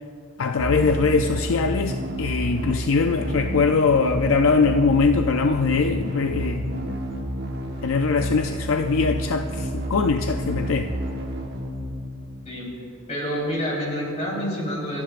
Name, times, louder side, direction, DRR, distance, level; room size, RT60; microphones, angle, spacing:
voice 1, 0.4-7.0 7.8-10.9, left 4 dB, 60° left, 6 dB, 0.4 m, -22 dB
sound 1, 0.6-12.5, equal, 50° right, 1.2 m, -30 dB
voice 2, 13.1-15.0, equal, 30° left, -4 dB, 3.9 m, -28 dB
29.5 x 10.5 x 2.5 m, 2.5 s
head